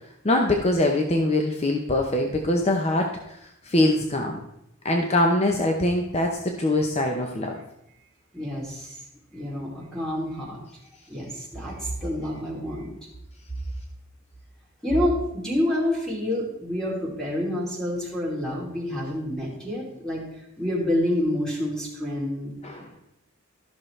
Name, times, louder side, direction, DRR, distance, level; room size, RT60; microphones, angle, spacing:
voice 1, 0.2-3.4 3.6-4.4 4.8-7.6 22.6-22.8, left 1 dB, 30° left, 3 dB, 0.7 m, -23 dB
voice 2, 8.3-9.0 9.3-10.6 11.1-12.9 14.8-20.2 20.6-22.5, left 1 dB, 5° left, -5 dB, 2.8 m, -28 dB
13.5 x 6.2 x 3.3 m, 0.82 s
head